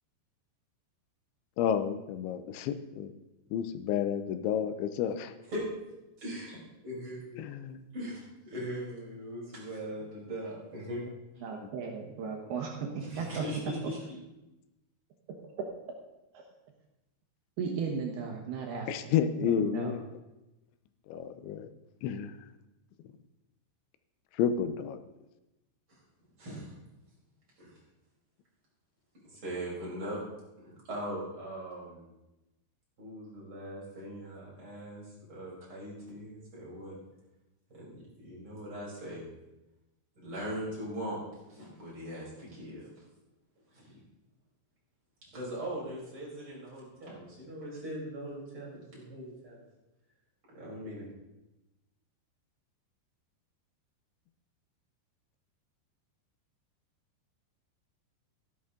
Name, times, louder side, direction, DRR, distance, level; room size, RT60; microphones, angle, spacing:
voice 1, 1.6-3.1 3.5-5.4 7.4-7.8 18.9-20.0 21.1-21.7 22.0-22.3 24.3-25.0, left 8 dB, 85° left, 11 dB, 3.1 m, -31 dB
voice 2, 6.2-7.4 7.9-8.2 8.4-11.0 13.0-14.2 25.9-26.0 26.4-26.8 27.6-27.8 29.2-30.2 30.6-32.1 33.0-36.9 37.7-39.3 40.2-41.2 41.5-42.9 43.7-44.0 45.3-49.7 50.5-51.0, equal, 30° right, -6 dB, 5.7 m, -40 dB
voice 3, 11.4-13.9 16.3-16.4 17.6-18.9 19.4-19.9, right 5 dB, 70° right, 1 dB, 2.9 m, -35 dB
14.0 x 11.5 x 3.7 m, 0.98 s
omnidirectional pair, 5.2 m